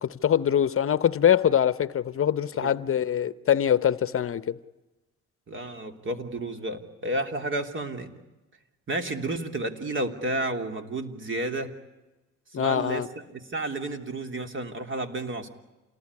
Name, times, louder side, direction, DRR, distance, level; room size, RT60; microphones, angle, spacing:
voice 1, 0.0-4.6 12.5-13.1, left 9 dB, 45° left, 0.8 m, -23 dB
voice 2, 5.5-8.1 8.9-11.7 12.5-15.5, right 2 dB, 40° right, 3.2 m, -31 dB
28.0 x 19.5 x 9.8 m
cardioid pair, 90°, 30 cm